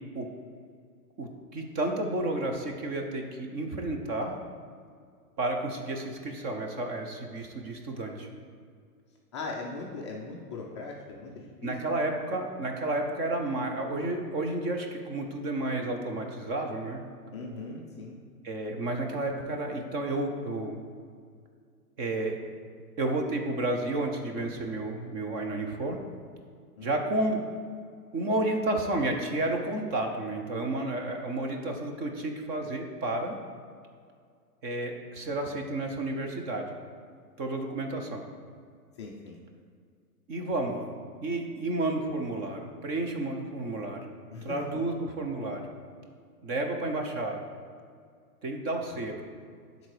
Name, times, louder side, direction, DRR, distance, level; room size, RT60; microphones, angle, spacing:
voice 1, 1.2-4.3 5.4-8.3 11.6-17.0 18.4-20.8 22.0-22.4 23.0-26.0 26.8-27.4 28.1-33.4 34.6-36.7 37.4-38.3 40.3-40.9 41.2-44.1 44.4-45.7 46.4-47.4 48.4-49.2, right 2 dB, 20° right, 3 dB, 0.7 m, -31 dB
voice 2, 9.3-11.7 17.3-18.2 26.8-26.9 39.0-39.4 44.3-44.6, left 3 dB, 20° left, -2 dB, 0.4 m, -39 dB
11.5 x 4.0 x 4.9 m, 2.1 s
hypercardioid pair, 135°, 47 cm